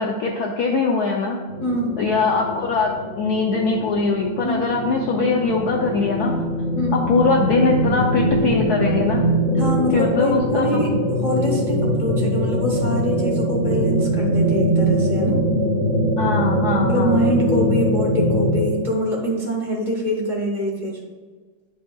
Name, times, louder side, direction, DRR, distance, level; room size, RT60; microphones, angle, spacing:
voice 1, 0.0-1.4 2.0-6.3 6.9-9.2 9.9-10.8 16.2-17.3, left 4 dB, 70° left, 0 dB, 1.0 m, -21 dB
sound 1, 1.5-18.7, equal, 30° right, 1.7 m, -22 dB
voice 2, 1.6-2.0 4.4-4.5 6.7-7.1 9.5-15.4 16.8-21.0, equal, 50° left, -3 dB, 0.5 m, -24 dB
8.8 x 5.1 x 2.3 m, 1.5 s
omnidirectional pair, 2.1 m